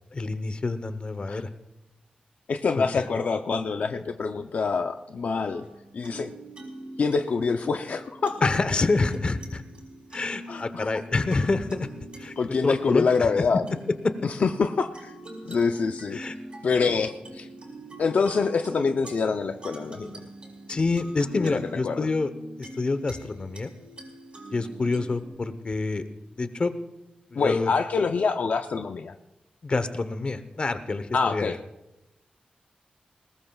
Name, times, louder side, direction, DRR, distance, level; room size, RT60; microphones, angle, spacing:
voice 1, 0.1-1.5 8.4-9.6 10.1-11.9 12.2-12.3 12.6-13.3 14.0-14.1 16.1-16.3 20.7-22.3 22.6-23.7 24.5-26.0 26.4-26.7 27.3-27.7 29.6-31.6, left 3 dB, 40° left, 11 dB, 0.9 m, -27 dB
voice 2, 2.5-5.6 5.9-6.3 7.0-8.5 10.5-10.9 12.4-13.6 14.2-15.1 15.5-16.2 16.6-17.5 18.0-20.2 21.3-22.1 27.4-29.1 31.1-31.6, left 5 dB, 65° left, 6 dB, 0.6 m, -26 dB
sound 1, 5.5-25.2, right 1 dB, 40° right, 5.0 m, -44 dB
21.0 x 19.0 x 2.4 m, 0.97 s
wide cardioid pair, 125°, 3 cm